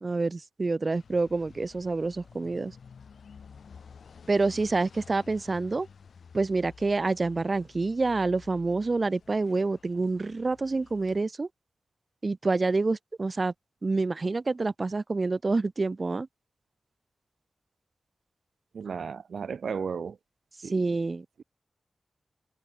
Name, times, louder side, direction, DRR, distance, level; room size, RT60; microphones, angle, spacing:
voice 1, 0.0-2.7 4.3-5.9 6.3-11.5 12.2-13.5 13.8-16.3 20.7-21.2, right 3 dB, 35° right, 0.8 m, -27 dB
sound 1, 0.9-11.2, left 6 dB, 85° left, 7.6 m, -52 dB
voice 2, 18.7-20.2 20.6-21.0, right 6 dB, 85° right, 0.7 m, -34 dB
wide cardioid pair, 145°, 0 cm